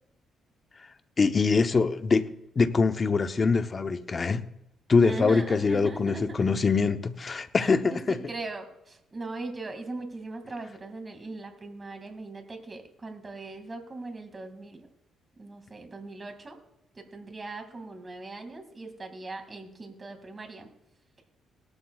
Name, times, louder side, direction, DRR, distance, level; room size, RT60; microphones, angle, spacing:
voice 1, 1.2-2.3 2.6-4.5 4.9-8.2, left 4 dB, 35° left, 0.9 m, -24 dB
voice 2, 5.0-6.5 7.6-14.9 15.4-16.6 17.0-20.7, right 2 dB, 30° right, 2.3 m, -39 dB
18.5 x 11.5 x 2.4 m
cardioid pair, 90°, 0 cm